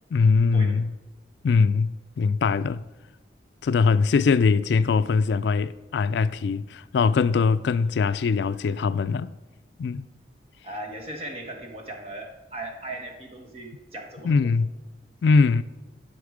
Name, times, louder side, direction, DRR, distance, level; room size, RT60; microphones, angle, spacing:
voice 1, 0.1-0.9 1.4-2.8 3.6-9.3 9.8-10.0 14.2-14.7 15.2-15.6, left 4 dB, 70° left, 0.3 m, -22 dB
voice 2, 10.6-14.5 15.3-15.4, right 1 dB, 30° right, 1.4 m, -38 dB
11.5 x 5.9 x 5.0 m
head